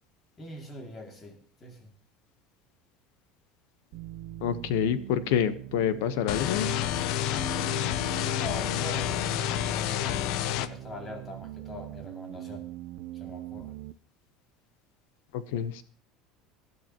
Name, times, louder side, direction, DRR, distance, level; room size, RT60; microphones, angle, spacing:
voice 1, 0.4-1.9 8.4-12.7 13.1-13.8, left 1 dB, 25° left, 3 dB, 2.6 m, -43 dB
sound 1, 3.9-13.9, right 14 dB, 65° right, 0.6 m, -42 dB
voice 2, 4.4-6.7 15.3-15.8, left 9 dB, 85° left, 13 dB, 1.1 m, -27 dB
sound 2, 6.3-10.7, left 13 dB, 60° left, 0.7 m, -29 dB
19.0 x 12.0 x 3.0 m, 0.43 s
cardioid pair, 150°, 0 cm